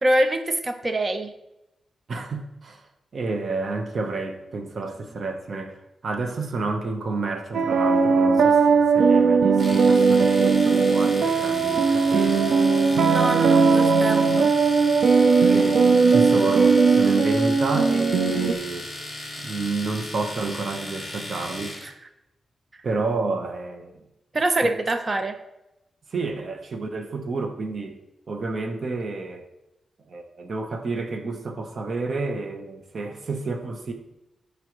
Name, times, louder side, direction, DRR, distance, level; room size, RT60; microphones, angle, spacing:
voice 1, 0.0-1.3 13.0-14.6 21.8-21.9 24.3-25.4, right 1 dB, 35° right, 7 dB, 1.0 m, -24 dB
voice 2, 2.1-2.8 3.1-12.5 15.4-18.9 19.4-21.8 22.8-24.0 24.6-24.7 26.1-28.0 28.3-29.5 30.1-33.9, right 3 dB, 55° right, 5 dB, 1.2 m, -30 dB
sound 1, 7.5-18.5, right 4 dB, 85° right, 0.5 m, -18 dB
Domestic sounds home sounds, 9.6-21.9, left 1 dB, 10° left, 3.0 m, -36 dB
14.0 x 4.9 x 3.2 m, 0.92 s
cardioid pair, 75°, 0 cm